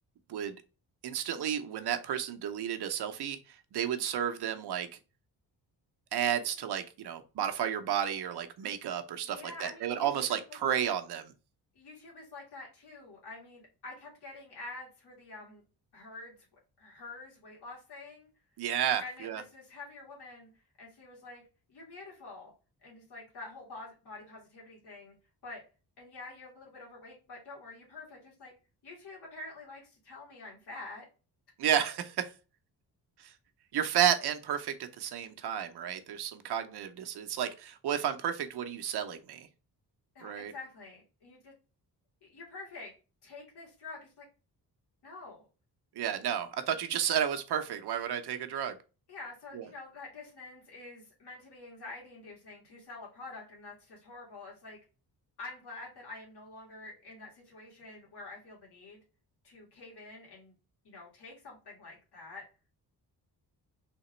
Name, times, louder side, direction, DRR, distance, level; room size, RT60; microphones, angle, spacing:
voice 1, 1.0-4.9 6.1-11.3 18.6-19.4 31.6-32.3 33.2-33.3 33.7-39.5 40.2-40.5 46.0-48.8 49.5-49.7, right 9 dB, 75° right, 8 dB, 0.7 m, -32 dB
voice 2, 9.2-10.6 11.8-15.6 15.9-16.4 16.8-18.3 19.0-20.5 20.8-21.4 21.7-22.5 22.8-25.2 25.4-25.6 26.0-28.5 28.8-31.0 40.1-41.5 42.2-42.9 43.2-44.2 45.0-45.4 49.1-54.8 55.4-59.0 59.4-60.5 60.8-62.4, left 3 dB, 75° left, -4 dB, 2.0 m, -47 dB
3.6 x 2.9 x 4.3 m, 0.33 s
wide cardioid pair, 175°, 40 cm